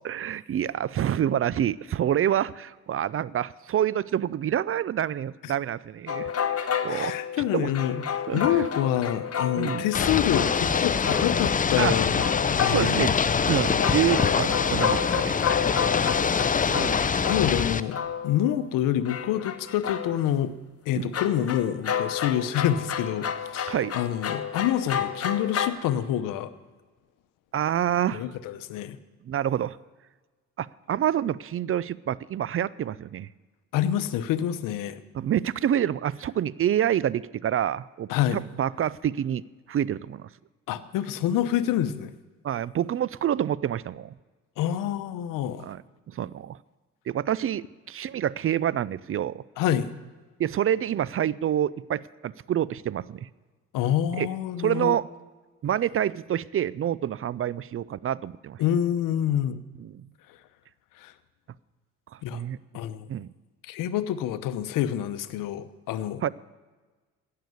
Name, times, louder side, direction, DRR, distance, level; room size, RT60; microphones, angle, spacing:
voice 1, 0.0-7.2 7.5-7.7 8.3-8.6 9.6-9.9 11.8-11.9 12.7-13.1 13.5-15.4 15.7-15.9 16.4-17.0 20.9-21.1 23.7-24.0 27.5-28.3 29.3-29.8 30.6-33.3 35.1-39.4 39.7-40.3 42.4-44.1 45.6-45.8 46.1-46.6 47.1-49.4 50.4-53.3 54.2-54.3 54.6-55.0 55.6-58.6 59.8-60.1 62.1-62.6 63.1-63.3 66.2-66.3, right 10 dB, 40° right, 21 dB, 0.5 m, -27 dB
sound 1, 6.1-13.0 13.4-13.5 13.8-18.6 19.0-20.3 21.1-25.7, left 8 dB, 45° left, 1.2 m, -31 dB
voice 2, 6.9-13.0 16.9-18.0 18.2-20.5 20.9-26.5 28.1-29.0 33.7-35.0 38.1-38.4 40.7-42.1 44.6-45.7 49.6-49.9 53.7-55.0 58.6-59.6 61.0-61.1 62.2-62.4 62.7-63.1 63.6-66.3, left 11 dB, 75° left, 13 dB, 0.9 m, -27 dB
Ocean / Boat Water vehicle, 9.9-17.8, left 6 dB, 25° left, 0.6 m, -24 dB
16.5 x 6.7 x 9.4 m, 1.3 s
supercardioid pair, 60°, 33 cm